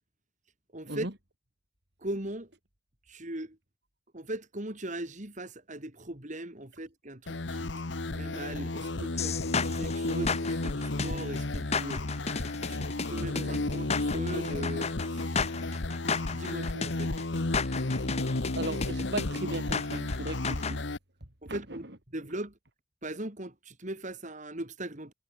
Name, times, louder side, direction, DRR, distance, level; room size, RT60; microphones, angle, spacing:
voice 1, 0.7-1.1 2.0-2.5 3.1-3.6 4.1-7.7 8.1-15.5 16.3-17.1 21.4-21.9 22.1-22.5 23.0-25.1, right 1 dB, 40° right, 3.0 m, -39 dB
sound 1, 7.3-21.0, left 2 dB, 60° left, 1.2 m, -33 dB
sound 2, 9.2-20.8, left 5 dB, 35° left, 1.3 m, -33 dB
voice 2, 18.6-20.8 21.5-21.6, right 2 dB, 55° right, 3.6 m, -36 dB
head